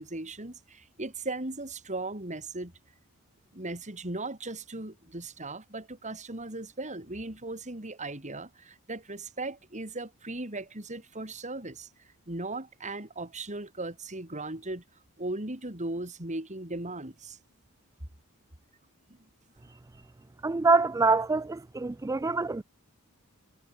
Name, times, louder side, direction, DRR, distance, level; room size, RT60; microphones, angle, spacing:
voice 1, 0.0-2.7 3.5-11.9 12.3-14.8 15.2-17.4 19.1-19.2, right 2 dB, 35° right, 4.7 m, -37 dB
voice 2, 20.4-22.6, right 3 dB, 15° right, 0.3 m, -25 dB
head